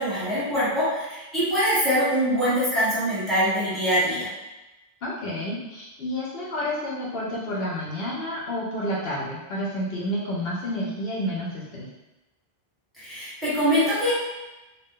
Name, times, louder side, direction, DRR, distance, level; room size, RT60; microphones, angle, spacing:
voice 1, 0.0-4.3 13.0-14.1, equal, ahead, -12 dB, 1.4 m, -23 dB
voice 2, 5.0-11.9, equal, 75° left, -5 dB, 0.8 m, -30 dB
2.5 x 2.2 x 3.6 m, 1.0 s
omnidirectional pair, 1.0 m